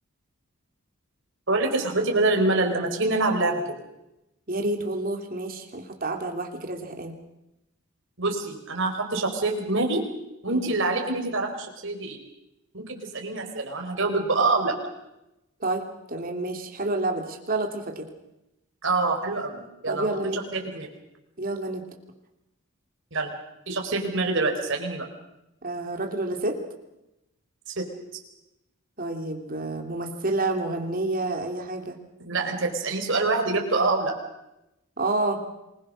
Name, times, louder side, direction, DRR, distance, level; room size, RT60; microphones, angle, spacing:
voice 1, 1.5-3.6 8.2-10.0 10.4-12.2 12.7-14.8 18.8-20.1 20.3-20.9 23.1-23.3 23.7-25.1 27.7-27.8 32.3-34.1, right 3 dB, 60° right, 2 dB, 4.4 m, -25 dB
voice 2, 4.5-7.1 10.5-10.6 15.6-18.1 19.8-20.4 21.4-21.8 25.6-26.6 29.0-31.9 35.0-35.4, right 2 dB, 40° right, 3 dB, 3.1 m, -29 dB
27.0 x 21.0 x 6.5 m, 0.92 s
head